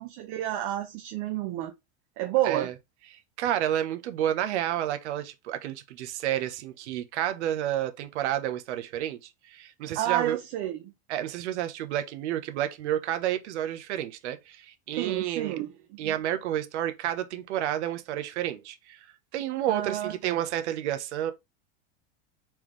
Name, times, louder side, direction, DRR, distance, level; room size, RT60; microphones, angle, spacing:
voice 1, 0.0-1.7 2.2-2.7 10.0-10.9 14.9-15.7 16.0-16.1 19.7-20.4, right 13 dB, 40° right, 0.6 m, -30 dB
voice 2, 3.1-9.2 9.4-10.4 11.1-15.6 16.0-19.0 19.3-21.3, right 11 dB, 80° right, 1.0 m, -30 dB
4.5 x 3.7 x 3.1 m
supercardioid pair, 170°, 34 cm